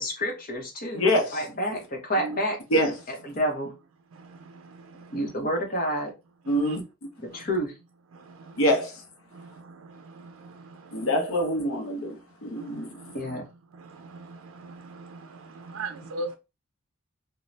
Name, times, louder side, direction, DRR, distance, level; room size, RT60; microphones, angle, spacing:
voice 1, 0.0-1.1 1.3-2.6 3.1-3.7 5.1-6.1 7.2-7.7 13.1-13.4, equal, 45° left, 0.9 m, -29 dB
voice 2, 0.9-1.4 2.7-2.9 6.5-6.8 8.6-9.0 10.9-12.9, equal, 85° left, 0.8 m, -25 dB
voice 3, 4.1-5.4 6.4-6.8 7.3-7.4 8.1-8.7 9.2-11.2 12.4-13.4 13.7-16.3, right 2 dB, 85° right, 0.4 m, -41 dB
2.6 x 2.2 x 3.1 m
head